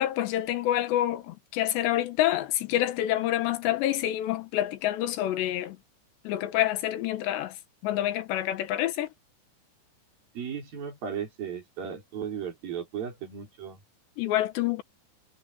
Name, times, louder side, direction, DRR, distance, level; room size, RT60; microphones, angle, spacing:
voice 1, 0.0-5.8 6.2-7.5 7.8-9.1 14.2-14.8, left 13 dB, 70° left, 3.2 m, -27 dB
voice 2, 10.3-13.8, right 8 dB, 50° right, 6.5 m, -36 dB
omnidirectional pair, 5.6 m